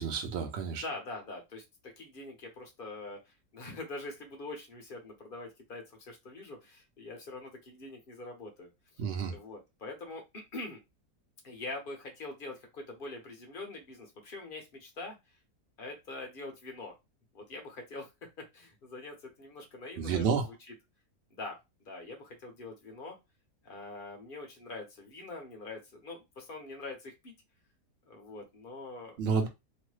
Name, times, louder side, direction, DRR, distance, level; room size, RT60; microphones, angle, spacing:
voice 1, 0.0-0.8 9.0-9.3 20.0-20.5 29.2-29.5, right 6 dB, 55° right, 0.8 m, -30 dB
voice 2, 0.8-8.7 9.3-10.8 11.4-15.2 15.8-16.9 17.3-18.1 18.4-20.7 21.3-23.2 23.6-27.3 28.1-29.2, left 2 dB, 45° left, 0.8 m, -44 dB
3.0 x 2.1 x 3.1 m
omnidirectional pair, 1.7 m